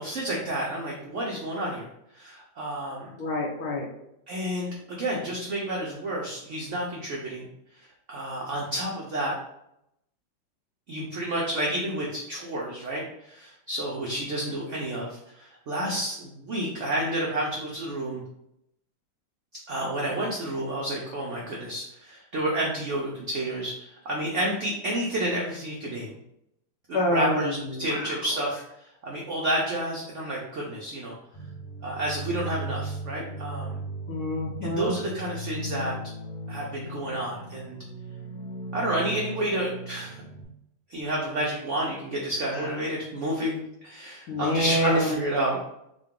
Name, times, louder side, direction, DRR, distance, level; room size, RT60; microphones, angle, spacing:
voice 1, 0.0-1.9 2.1-3.2 4.3-7.5 7.7-9.3 10.9-18.2 19.7-26.2 26.9-31.1 31.8-33.8 34.6-36.0 36.5-37.8 38.7-40.2 40.9-45.6, right 1 dB, 75° right, -3 dB, 0.6 m, -30 dB
voice 2, 3.2-3.8 26.9-28.1 34.1-34.9 42.6-42.7 44.3-45.2, left 1 dB, 65° left, -1 dB, 1.0 m, -27 dB
sound 1, 31.3-40.4, right 2 dB, 85° left, 1.7 m, -37 dB
3.8 x 2.2 x 3.6 m, 0.81 s
omnidirectional pair, 2.0 m